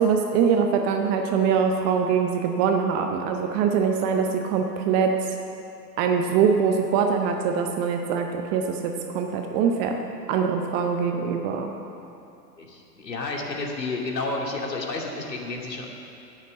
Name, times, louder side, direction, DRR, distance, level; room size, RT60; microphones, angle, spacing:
voice 1, 0.0-5.1 6.0-10.0 10.3-11.7, right 6 dB, 20° right, 4 dB, 0.5 m, -23 dB
voice 2, 12.6-15.9, left 3 dB, 80° left, -1 dB, 2.5 m, -31 dB
11.0 x 8.9 x 8.4 m, 2.8 s
figure-of-eight pair, 110°, 49 cm